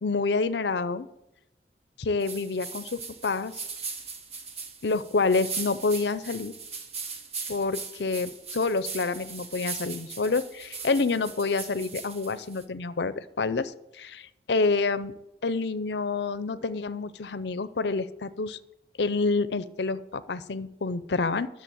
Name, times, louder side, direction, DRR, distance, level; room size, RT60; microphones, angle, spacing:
voice 1, 0.0-1.1 2.0-3.6 4.8-6.5 7.5-15.1 15.4-18.6 19.0-21.5, left 3 dB, 70° left, 14 dB, 0.6 m, -28 dB
sound 1, 2.2-12.6, right 5 dB, 35° right, 1.3 m, -39 dB
11.0 x 6.8 x 8.7 m, 0.88 s
head